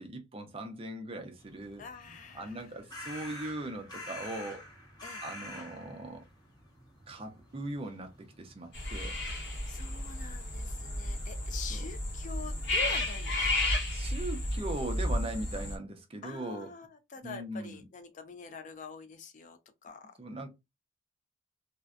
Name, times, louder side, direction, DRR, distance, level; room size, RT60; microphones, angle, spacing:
voice 1, 0.0-1.8 2.3-4.6 5.2-6.2 7.1-8.1 8.4-9.2 11.7-11.8 13.9-16.7 17.2-17.8 20.2-20.5, right 1 dB, 30° right, 0.5 m, -39 dB
sound 1, 1.4-13.5, left 1 dB, 20° left, 0.9 m, -50 dB
voice 2, 1.8-2.8 5.0-5.2 9.7-13.5 16.2-20.2, left 5 dB, 35° left, 0.3 m, -45 dB
sound 2, 8.7-15.8, left 1 dB, 55° left, 0.9 m, -32 dB
2.5 x 2.1 x 2.3 m
head